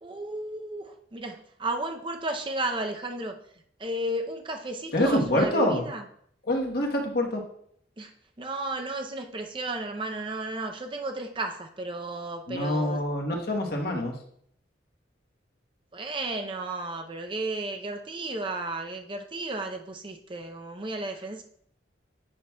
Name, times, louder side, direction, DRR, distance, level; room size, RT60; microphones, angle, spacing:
voice 1, 0.0-3.4 3.8-6.0 8.0-8.1 8.4-13.0 15.9-21.4, right 2 dB, 25° right, 4 dB, 0.6 m, -33 dB
voice 2, 4.9-5.9 6.5-7.4 12.5-14.1, left 1 dB, 55° left, 1 dB, 1.2 m, -26 dB
8.8 x 5.8 x 2.3 m, 0.65 s
head